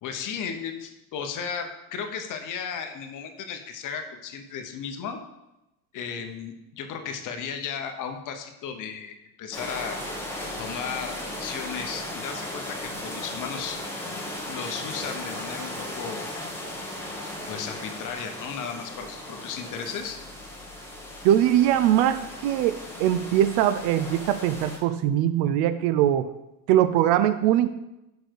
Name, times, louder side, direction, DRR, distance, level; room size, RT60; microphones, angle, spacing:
voice 1, 0.0-5.2 5.9-10.0 10.6-11.1 11.4-13.8 14.5-16.3 17.5-20.2, left 7 dB, 40° left, 6 dB, 0.9 m, -35 dB
sound 1, 9.5-24.8, left 1 dB, 5° left, 1.3 m, -36 dB
voice 2, 21.2-26.3 26.7-27.7, right 11 dB, 55° right, 12 dB, 0.5 m, -22 dB
5.1 x 4.4 x 4.6 m, 0.94 s
supercardioid pair, 95°, 46 cm